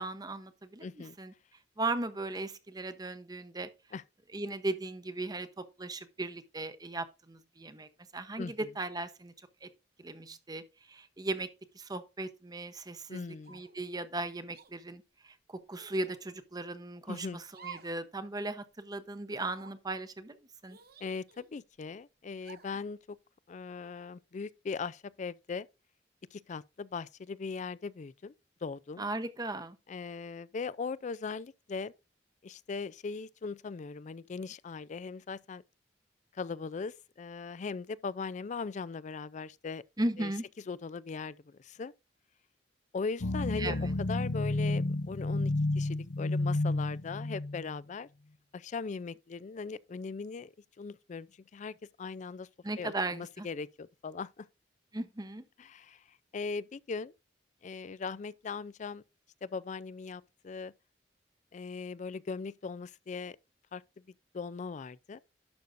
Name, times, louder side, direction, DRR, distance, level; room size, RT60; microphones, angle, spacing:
voice 1, 0.0-1.3 1.8-3.7 4.3-9.3 9.6-9.7 10.0-10.6 10.9-11.5 11.7-13.2 13.5-20.4 20.6-20.8 29.0-29.8 40.0-40.4 43.6-43.9 52.6-53.5 54.9-55.4, right 2 dB, 20° right, 0.8 m, -37 dB
voice 2, 0.8-1.2 3.9-4.0 8.4-8.5 13.1-13.6 17.1-17.4 21.0-23.2 23.5-25.7 26.3-28.3 28.6-29.0 29.9-31.9 32.4-35.6 36.3-39.8 40.2-40.3 40.7-41.9 42.9-43.8 44.1-48.1 48.5-52.5 52.8-54.5 55.6-57.1 57.6-59.0 59.4-60.7 61.5-63.4 63.7-63.8 64.3-65.2, left 4 dB, 40° left, 0.4 m, -39 dB
sound 1, 13.4-13.8 14.5-14.7 15.7-16.2 17.5-18.0 18.4-18.5 19.3-19.8 20.7-21.6 22.4-22.8, right 6 dB, 55° right, 1.1 m, -51 dB
sound 2, 43.2-47.8, left 2 dB, 70° left, 0.7 m, -31 dB
11.5 x 6.6 x 2.6 m
head